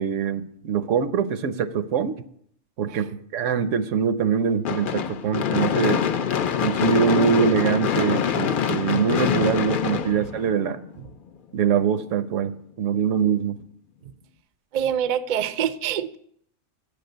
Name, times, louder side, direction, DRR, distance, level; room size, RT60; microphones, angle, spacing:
voice 1, 0.0-2.2 2.8-6.0 6.6-10.8 11.5-13.6, right 7 dB, 80° right, 11 dB, 1.0 m, -23 dB
Gunshot gunfire / Fireworks, 4.7-10.9, left 8 dB, 55° left, 0.6 m, -24 dB
voice 2, 14.7-16.2, right 9 dB, 55° right, 12 dB, 0.5 m, -26 dB
9.6 x 5.3 x 7.9 m, 0.67 s
omnidirectional pair, 1.3 m